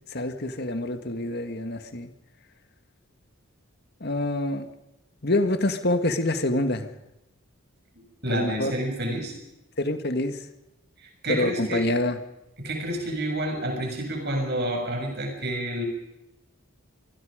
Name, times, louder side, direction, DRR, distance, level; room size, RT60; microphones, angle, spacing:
voice 1, 0.1-2.1 4.0-4.7 5.2-6.9 8.3-8.7 9.8-10.4 11.3-12.2, left 1 dB, 50° left, 8 dB, 1.9 m, -26 dB
voice 2, 8.2-9.3 11.2-11.9 12.6-15.9, right 1 dB, 50° right, 2 dB, 7.3 m, -29 dB
26.0 x 20.5 x 5.2 m, 0.92 s
head